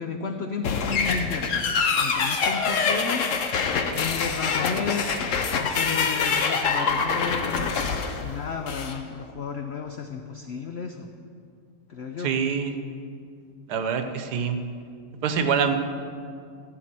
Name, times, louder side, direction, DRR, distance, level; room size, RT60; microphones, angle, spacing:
voice 1, 0.0-1.7 2.0-3.3 3.9-5.2 5.5-11.1 11.9-12.3, left 5 dB, 70° left, 5 dB, 0.6 m, -33 dB
sound 1, 0.6-9.0, left 5 dB, 55° left, 1.1 m, -25 dB
voice 2, 12.2-12.7 13.7-14.6 15.2-15.7, right 6 dB, 70° right, 7 dB, 1.4 m, -25 dB
14.5 x 5.0 x 8.8 m, 2.3 s
omnidirectional pair, 1.8 m